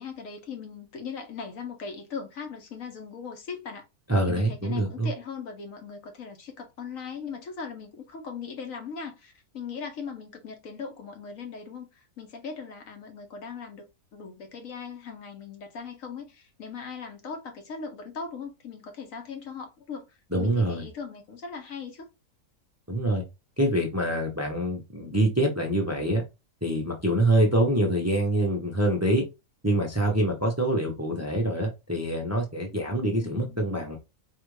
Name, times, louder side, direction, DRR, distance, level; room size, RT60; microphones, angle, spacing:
voice 1, 0.0-3.8 4.3-13.8 14.1-22.1 33.2-33.6, left 5 dB, 65° left, 1.3 m, -39 dB
voice 2, 4.1-5.1 20.3-20.8 22.9-23.2 23.6-26.2 26.6-29.2 29.6-34.0, right 1 dB, 15° right, 0.5 m, -25 dB
4.3 x 2.5 x 3.1 m
omnidirectional pair, 1.6 m